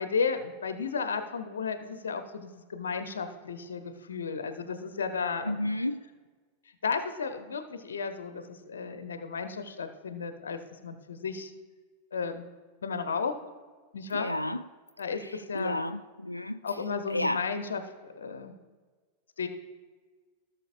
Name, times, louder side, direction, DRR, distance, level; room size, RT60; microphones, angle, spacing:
voice 1, 0.0-5.7 6.8-11.5 12.1-12.5 12.8-13.3 13.9-14.3 15.0-15.8 16.6-18.5 19.4-19.5, left 5 dB, 70° left, 8 dB, 0.7 m, -33 dB
voice 2, 5.4-6.0 14.1-14.6 15.1-16.6 17.1-17.5, left 1 dB, 85° left, 10 dB, 0.3 m, -32 dB
17.0 x 6.5 x 2.5 m, 1.4 s
figure-of-eight pair, 90°, 0 cm